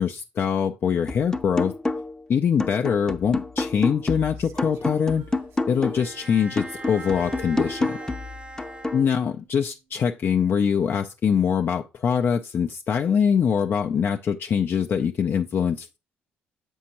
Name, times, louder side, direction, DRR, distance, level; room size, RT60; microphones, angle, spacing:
voice 1, 0.0-1.7 2.3-5.2 5.7-8.0 8.9-16.0, left 7 dB, 50° left, 0.5 m, -23 dB
sound 1, 1.1-2.2 2.6-6.1 6.6-9.1, left 2 dB, 15° left, 0.6 m, -29 dB
Female singing, 4.3-6.6 6.8-8.9 9.4-9.6, right 8 dB, 70° right, 0.8 m, -47 dB
Bowed string instrument, 5.9-9.6, right 2 dB, 25° right, 0.7 m, -41 dB
7.4 x 5.4 x 2.9 m
hypercardioid pair, 55°, 5 cm